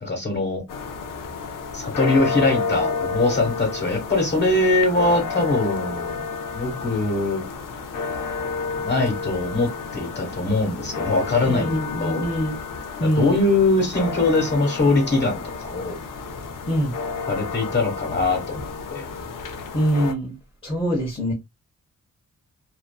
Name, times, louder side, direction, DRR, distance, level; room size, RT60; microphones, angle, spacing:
voice 1, 0.0-0.6 1.7-6.2 6.5-7.5 8.8-11.7 12.0-12.2 13.0-16.0 17.3-19.0, left 2 dB, 35° left, 1.1 m, -22 dB
sound 1, 0.7-20.1, left 4 dB, 85° left, 0.6 m, -31 dB
voice 2, 11.4-12.6 13.0-13.4 16.7-16.9 19.7-20.4 20.6-21.3, equal, 15° left, 0.8 m, -23 dB
2.5 x 2.4 x 2.2 m
wide cardioid pair, 135°, 31 cm